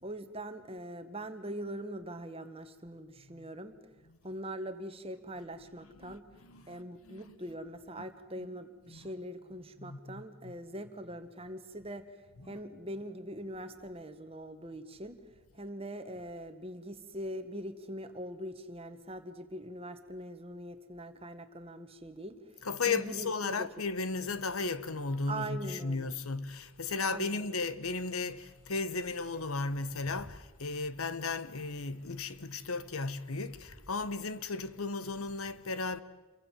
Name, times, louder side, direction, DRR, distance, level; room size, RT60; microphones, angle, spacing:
voice 1, 0.0-3.7 4.2-6.2 6.7-12.0 12.5-15.2 15.6-22.4 22.9-23.7 25.3-26.1 27.0-27.5, right 1 dB, 25° right, 1.8 m, -42 dB
voice 2, 5.7-7.6 8.0-8.1 8.4-8.5 8.8-9.1 9.8-10.6 12.4-12.6 22.6-36.0, left 3 dB, 85° left, 1.2 m, -35 dB
29.0 x 23.5 x 7.6 m
head